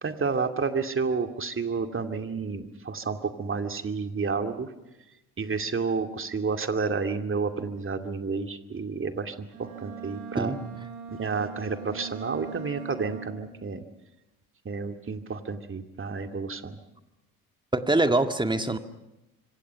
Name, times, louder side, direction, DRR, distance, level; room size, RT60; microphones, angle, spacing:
voice 1, 0.0-4.7 5.4-10.5 11.1-13.8 14.6-16.8, right 4 dB, 25° right, 6 dB, 2.5 m, -30 dB
Bowed string instrument, 9.5-13.6, right 6 dB, 80° right, 4.4 m, -41 dB
voice 2, 10.4-10.9 17.7-18.8, right 2 dB, 10° right, 8 dB, 2.0 m, -25 dB
26.0 x 25.5 x 5.8 m, 0.98 s
hypercardioid pair, 55°, 45 cm